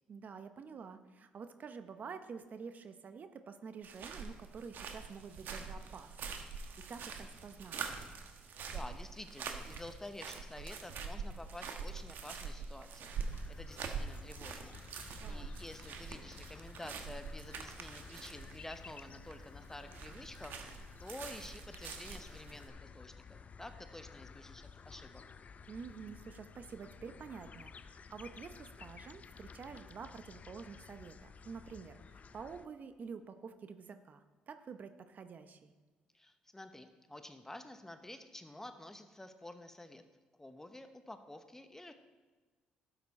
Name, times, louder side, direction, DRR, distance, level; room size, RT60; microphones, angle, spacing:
voice 1, 0.1-7.8 15.2-15.5 25.7-35.7, right 5 dB, 50° right, 9 dB, 0.7 m, -49 dB
sound 1, 3.8-22.7, right 5 dB, 65° right, 1.1 m, -45 dB
voice 2, 8.4-13.1 13.5-14.8 15.2-25.2 36.1-40.0 40.4-41.9, left 1 dB, 10° left, 8 dB, 0.9 m, -50 dB
sound 2, 13.1-32.7, left 5 dB, 40° left, 0.5 m, -54 dB
12.0 x 6.8 x 4.2 m, 1.4 s
supercardioid pair, 60°, 4 cm